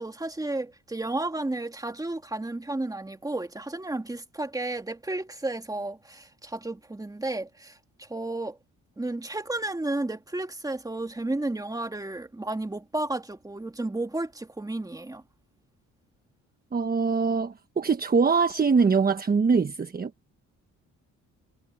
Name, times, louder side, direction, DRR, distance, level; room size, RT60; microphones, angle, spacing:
voice 1, 0.0-8.6 9.0-15.2, right 2 dB, 10° right, 2.5 m, -32 dB
voice 2, 16.7-20.1, right 5 dB, 30° right, 1.3 m, -23 dB
cardioid pair, 90°, 30 cm